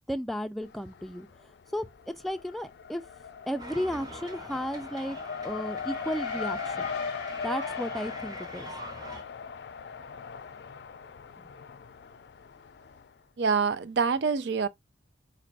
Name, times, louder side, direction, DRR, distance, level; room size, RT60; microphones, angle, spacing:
voice 1, 0.1-1.3 1.7-3.0 3.5-5.2 5.4-6.9 7.4-8.7, equal, ahead, 0.3 m, -34 dB
Race car auto racing, 0.6-1.4 1.7-13.0, left 5 dB, 65° left, 0.4 m, -39 dB
sound 1, 3.6-9.2, right 1 dB, 20° right, 0.9 m, -44 dB
voice 2, 13.4-14.7, right 5 dB, 70° right, 0.5 m, -26 dB
4.2 x 2.5 x 4.5 m
head